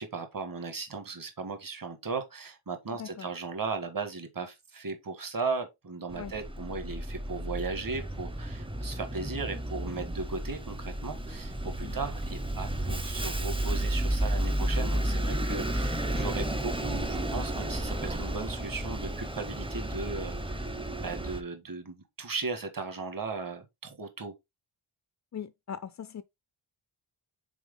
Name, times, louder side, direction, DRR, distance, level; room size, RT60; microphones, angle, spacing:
voice 1, 0.0-20.6 21.0-24.3, right 4 dB, 40° right, 1.6 m, -37 dB
Bus, 6.1-21.4, right 1 dB, 10° right, 0.7 m, -32 dB
voice 2, 25.3-26.2, left 8 dB, 40° left, 0.4 m, -40 dB
6.1 x 4.5 x 3.7 m
wide cardioid pair, 130°, 49 cm